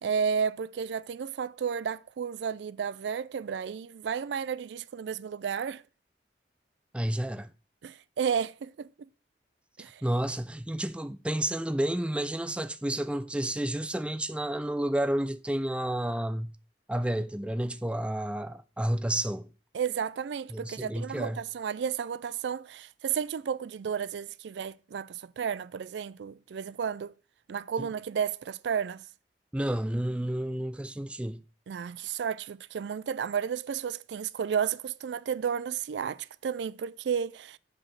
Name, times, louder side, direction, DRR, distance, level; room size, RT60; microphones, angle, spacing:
voice 1, 0.0-5.8 7.8-8.9 9.8-10.0 19.7-27.1 27.5-29.0 31.7-37.6, right 7 dB, 75° right, 0.4 m, -32 dB
voice 2, 6.9-7.5 10.0-16.5 16.9-19.5 20.5-21.4 27.8-27.9 29.5-31.4, right 1 dB, 5° right, 0.4 m, -30 dB
7.5 x 5.0 x 5.8 m
head